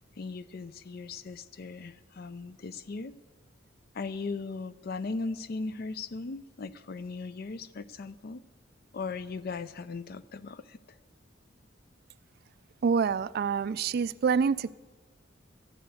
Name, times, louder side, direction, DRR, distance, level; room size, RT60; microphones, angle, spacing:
voice 1, 0.2-3.2 3.9-8.4 8.9-10.8, left 4 dB, 50° left, 14 dB, 0.5 m, -38 dB
voice 2, 12.8-14.7, right 5 dB, 50° right, 17 dB, 0.3 m, -26 dB
12.0 x 9.0 x 8.0 m, 1.3 s
head